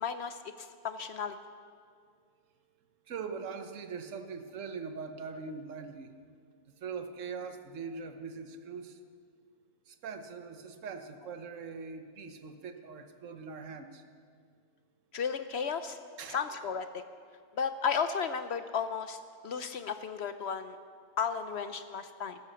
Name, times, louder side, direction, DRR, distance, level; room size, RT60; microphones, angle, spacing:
voice 1, 0.0-1.4 15.1-16.0 16.3-17.0 17.6-20.8 21.2-22.4, left 6 dB, 70° left, 10 dB, 0.6 m, -34 dB
voice 2, 3.1-6.1 6.8-9.0 9.9-14.0 16.2-16.4, right 5 dB, 55° right, 8 dB, 1.3 m, -42 dB
14.5 x 12.5 x 6.9 m, 2.1 s
omnidirectional pair, 1.7 m